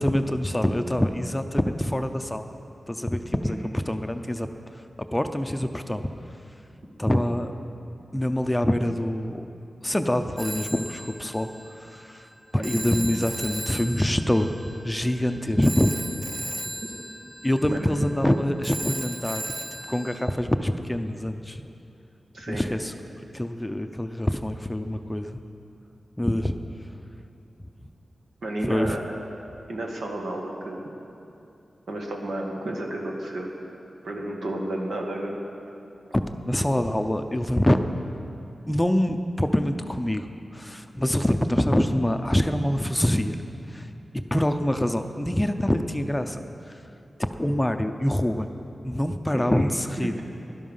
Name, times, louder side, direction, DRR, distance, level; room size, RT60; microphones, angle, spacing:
voice 1, 0.0-2.4 2.9-3.6 3.9-4.5 5.1-6.0 7.0-7.5 8.1-9.5 9.8-11.5 11.8-12.3 12.5-15.9 17.4-19.4 19.9-21.6 22.5-22.9 23.3-25.4 26.2-26.5 28.7-29.0 36.1-37.8 38.7-40.3 40.5-43.4 43.7-43.9 44.1-46.8 47.4-48.5 48.8-50.1, left 1 dB, 10° left, 7 dB, 0.6 m, -25 dB
Telephone, 10.4-20.2, right 1 dB, 30° right, 0.9 m, -36 dB
voice 2, 28.4-29.0 29.7-30.8 31.9-33.5 34.0-35.4 49.3-49.7 50.0-50.2, right 1 dB, 85° right, 0 dB, 2.0 m, -32 dB
17.0 x 12.0 x 5.6 m, 2.7 s
wide cardioid pair, 140°, 0 cm